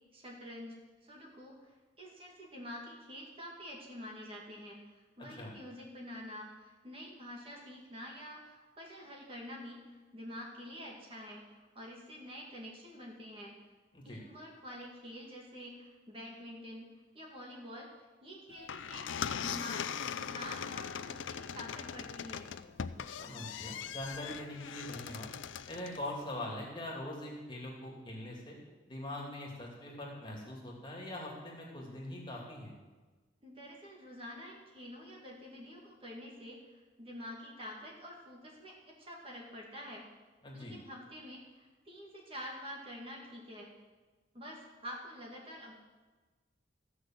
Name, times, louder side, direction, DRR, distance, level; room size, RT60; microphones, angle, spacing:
voice 1, 0.1-13.5 14.0-16.9 17.1-17.9 18.2-22.5 33.4-40.0 40.5-43.7 44.3-45.7, equal, 30° right, -2 dB, 2.1 m, -47 dB
sound 1, 18.5-26.1, left 7 dB, 90° left, 0.5 m, -40 dB
voice 2, 23.2-25.3 25.7-28.6 28.9-32.7 40.4-40.8, left 1 dB, 25° left, -2 dB, 2.6 m, -42 dB
14.5 x 6.3 x 7.5 m, 1.3 s
head